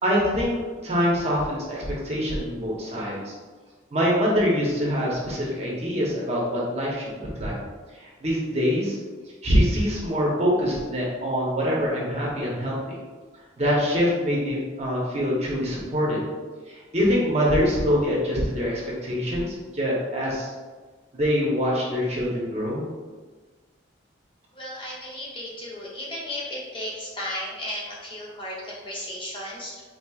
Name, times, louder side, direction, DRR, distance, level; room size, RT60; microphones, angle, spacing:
voice 1, 0.0-3.3 3.9-7.5 7.9-9.0 9.4-13.0 13.6-16.2 16.7-20.5 21.1-22.9, equal, 35° right, -4 dB, 0.7 m, -24 dB
voice 2, 24.5-29.8, left 1 dB, 25° left, -5 dB, 0.6 m, -34 dB
4.0 x 2.9 x 2.3 m, 1.4 s
head